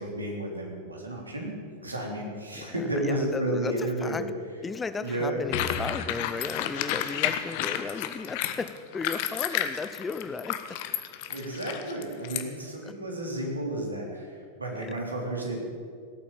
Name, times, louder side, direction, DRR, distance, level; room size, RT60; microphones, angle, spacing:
voice 1, 0.0-1.5 1.8-4.3 5.0-5.4 11.3-14.3 14.6-15.6, right 1 dB, 80° right, 0 dB, 3.3 m, -32 dB
voice 2, 2.5-4.3 4.6-10.8 12.8-12.9 14.7-15.0, left 4 dB, 15° left, 12 dB, 0.7 m, -35 dB
sound 1, 5.5-12.4, left 10 dB, 50° left, 1.1 m, -31 dB
17.5 x 8.6 x 8.7 m, 2.1 s
figure-of-eight pair, 90°, 0 cm